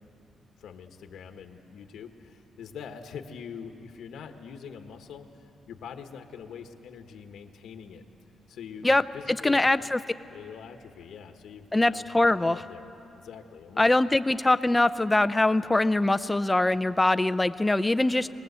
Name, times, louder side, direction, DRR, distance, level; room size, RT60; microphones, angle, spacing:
voice 1, 0.6-8.0 8.5-9.7 10.3-13.8, left 7 dB, 85° left, 6 dB, 1.3 m, -44 dB
voice 2, 9.4-10.0 11.7-12.6 13.8-18.3, left 2 dB, 10° left, 13 dB, 0.5 m, -23 dB
24.0 x 20.0 x 8.1 m, 2.7 s
wide cardioid pair, 155°, 0 cm